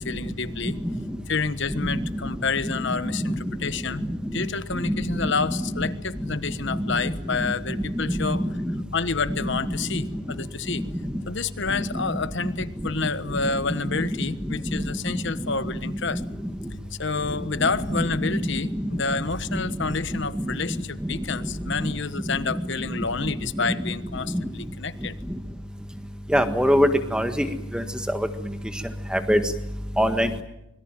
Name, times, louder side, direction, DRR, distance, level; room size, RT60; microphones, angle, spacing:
voice 1, 0.0-0.7 1.3-8.4 8.9-10.8 11.3-16.2 16.7-25.1, left 4 dB, 55° left, 13 dB, 1.3 m, -29 dB
voice 2, 0.8-1.2 1.7-2.1 2.6-2.8 3.1-3.4 4.1-4.5 4.7-5.9 6.2-6.3 6.8-7.1 7.4-7.5 7.9-8.8 9.3-10.0 10.7-11.2 11.7-12.2 13.3-13.4 13.8-15.5 16.1-16.2 16.6-16.7 17.6-18.9 19.5-19.6 20.1-20.8 21.0-21.2 21.8-21.9 22.3-22.4 22.8-23.0 23.6-23.9 24.3-24.4 26.3-28.5 29.1-29.4 30.0-30.3, equal, 5° right, 8 dB, 1.6 m, -26 dB
25.0 x 22.5 x 9.1 m, 0.88 s
head